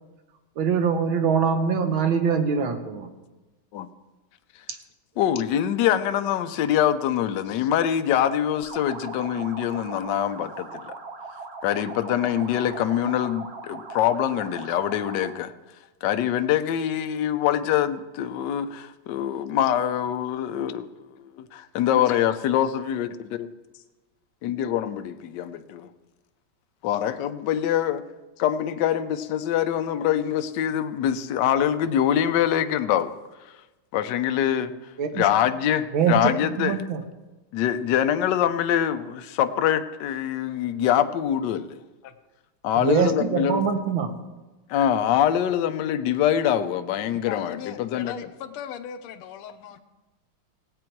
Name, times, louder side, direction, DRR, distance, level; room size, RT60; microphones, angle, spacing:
voice 1, 0.6-3.1 35.0-35.2 35.9-36.3 36.6-37.0 42.8-44.1, right 6 dB, 70° right, 1.9 m, -23 dB
voice 2, 5.2-10.9 11.6-15.5 16.0-23.5 24.4-25.9 26.8-28.0 28.4-33.1 33.9-34.7 35.1-36.8 37.5-41.8 42.6-43.6 44.7-48.3, left 10 dB, 70° left, 1.2 m, -24 dB
sound 1, 8.6-15.4, right 3 dB, 45° right, 0.9 m, -39 dB
voice 3, 47.3-49.8, left 9 dB, 90° left, 1.6 m, -37 dB
18.0 x 8.5 x 4.6 m
omnidirectional pair, 2.3 m